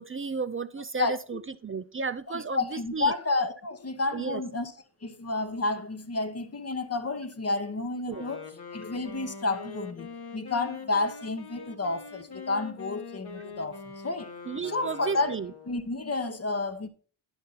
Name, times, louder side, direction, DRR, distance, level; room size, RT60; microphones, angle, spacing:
voice 1, 0.0-3.1 4.1-4.4 8.1-8.2 14.5-15.5, right 5 dB, 30° right, 0.3 m, -33 dB
voice 2, 1.0-1.4 2.3-4.7 5.0-14.3 14.6-15.3 15.7-16.9, left 3 dB, 30° left, 0.8 m, -31 dB
Wind instrument woodwind instrument, 8.0-16.0, left 5 dB, 50° left, 1.2 m, -43 dB
10.5 x 5.2 x 3.9 m
cardioid pair, 65°, 49 cm